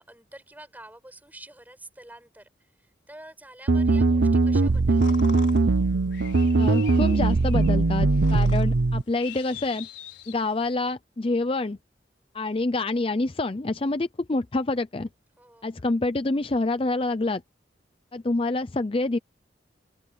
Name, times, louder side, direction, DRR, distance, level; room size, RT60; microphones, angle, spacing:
voice 1, 0.0-5.1 15.4-15.9, right 1 dB, 10° right, 6.6 m, -48 dB
sound 1, 3.7-9.0, right 3 dB, 80° right, 0.7 m, -21 dB
sound 2, 4.5-10.7, left 8 dB, 80° left, 4.6 m, -44 dB
voice 2, 6.6-9.9 10.3-11.8 12.3-15.1 15.6-17.4 18.1-19.2, left 2 dB, 30° left, 0.5 m, -27 dB
open air
head